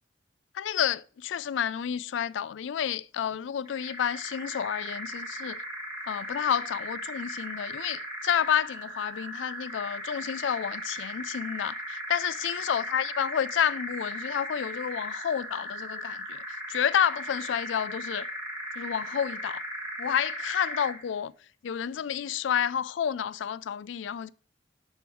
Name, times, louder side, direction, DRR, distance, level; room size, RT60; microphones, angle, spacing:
voice 1, 0.5-5.6 6.1-16.4 16.7-18.3 18.8-19.6 20.0-21.3 21.6-24.3, left 8 dB, 90° left, 0.4 m, -30 dB
sound 1, 3.7-21.1, equal, 15° right, 1.4 m, -37 dB
10.5 x 3.5 x 4.5 m
head